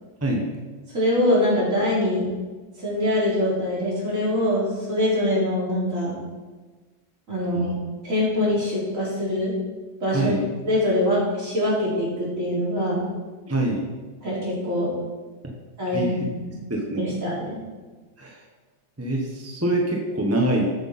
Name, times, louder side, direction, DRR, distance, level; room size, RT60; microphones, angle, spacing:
voice 1, 0.9-2.3 2.8-6.2 7.3-7.7 8.0-9.5 10.0-10.3 10.7-13.0 14.2-15.0 15.8-16.6 17.0-17.6, left 1 dB, 40° right, -7 dB, 4.2 m, -23 dB
voice 2, 10.1-10.5 13.5-13.9 15.9-16.1 16.7-17.0 18.2-18.4 19.0-20.7, right 1 dB, 10° right, -1 dB, 1.0 m, -24 dB
14.0 x 8.2 x 4.4 m, 1.3 s
omnidirectional pair, 2.1 m